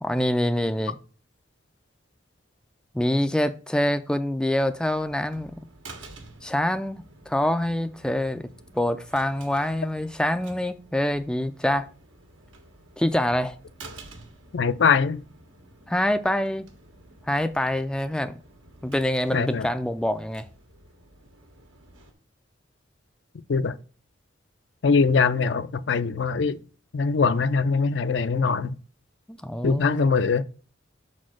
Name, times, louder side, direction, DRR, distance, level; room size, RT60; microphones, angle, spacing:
voice 1, 0.0-1.0 2.9-5.6 6.4-8.5 8.7-11.9 13.0-13.5 15.9-16.7 17.3-18.3 18.8-20.5 29.4-30.2, left 1 dB, 5° left, 0.3 m, -25 dB
sound 1, 4.6-22.1, right 2 dB, 90° right, 1.5 m, -50 dB
voice 2, 14.5-15.2 19.3-19.7 23.5-23.8 24.8-26.6 26.9-28.8 29.6-30.4, left 5 dB, 65° left, 0.4 m, -22 dB
5.6 x 4.3 x 6.1 m
head